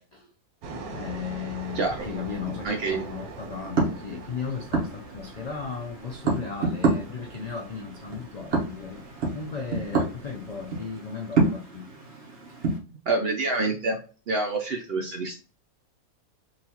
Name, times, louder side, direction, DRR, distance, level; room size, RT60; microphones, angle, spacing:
sound 1, 0.6-10.9, right 3 dB, 85° right, 1.2 m, -43 dB
voice 1, 0.9-12.6, left 6 dB, 80° left, 0 dB, 0.3 m, -36 dB
sound 2, 1.6-12.8, right 3 dB, 50° right, 1.3 m, -30 dB
voice 2, 1.7-2.1 2.6-3.1 13.1-14.0 14.3-15.4, right 3 dB, 70° right, 2 dB, 0.6 m, -27 dB
3.9 x 2.4 x 2.8 m, 0.37 s
omnidirectional pair, 1.5 m